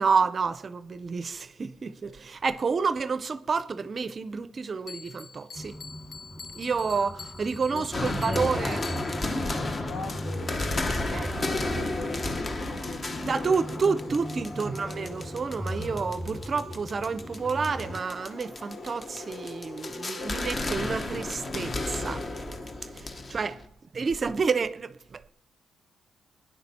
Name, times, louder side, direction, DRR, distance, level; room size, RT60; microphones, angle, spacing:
voice 1, 0.0-5.8 6.5-8.8 10.9-11.9 13.2-22.2 22.8-23.6 23.9-25.3, right 5 dB, 35° right, 0.5 m, -29 dB
Bell, 4.9-9.4, left 5 dB, 65° left, 0.8 m, -45 dB
sound 1, 5.6-18.0, equal, 5° left, 1.3 m, -38 dB
voice 2, 7.6-10.8 11.6-14.2 23.4-23.5, left 4 dB, 50° left, 1.3 m, -42 dB
sound 2, 7.9-23.6, left 2 dB, 35° left, 1.0 m, -33 dB
23.5 x 10.0 x 4.2 m
cardioid pair, 110°, 0 cm